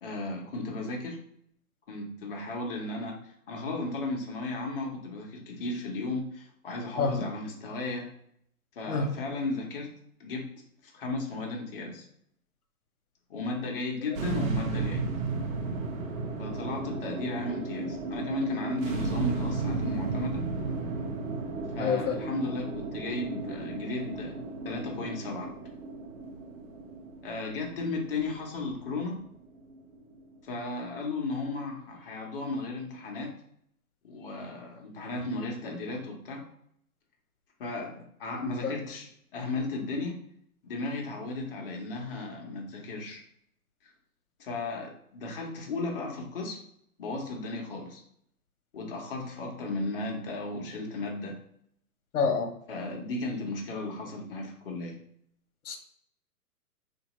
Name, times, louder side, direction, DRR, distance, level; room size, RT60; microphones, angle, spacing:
voice 1, 0.0-1.2 1.9-8.1 8.7-9.9 10.2-10.5 10.8-12.0 13.3-15.0 16.4-20.5 21.7-24.4 24.6-25.5 27.2-29.2 30.4-33.3 34.0-36.5 37.6-40.2 40.6-43.2 43.8-43.9 44.4-46.6 47.0-48.0 48.7-51.4 52.7-55.0, left 2 dB, 40° left, 0 dB, 1.0 m, -35 dB
sound 1, 14.1-30.5, right 3 dB, 60° right, 0.8 m, -34 dB
voice 2, 21.8-22.2 38.6-38.7 52.1-52.5 55.6-55.8, left 5 dB, 75° left, 4 dB, 0.9 m, -27 dB
4.6 x 2.8 x 3.0 m, 0.71 s
hypercardioid pair, 160°, 45 cm